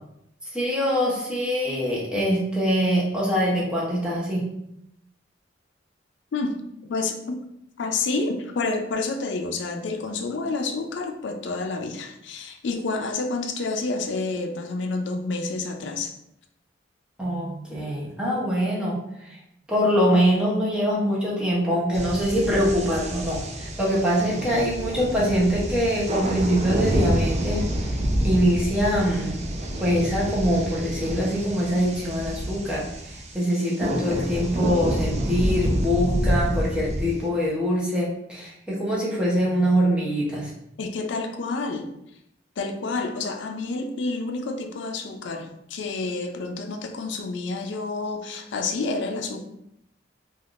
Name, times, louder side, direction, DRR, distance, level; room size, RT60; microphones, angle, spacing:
voice 1, 0.5-4.4 17.2-19.4 19.7-28.0 28.2-29.4 29.8-40.5, equal, 5° right, -6 dB, 0.7 m, -24 dB
voice 2, 6.9-7.4 7.8-16.1 40.8-41.9 42.6-49.4, left 3 dB, 70° left, 5 dB, 0.4 m, -29 dB
sound 1, 21.9-37.3, right 1 dB, 35° right, 0.4 m, -28 dB
3.4 x 2.3 x 2.4 m, 0.78 s
head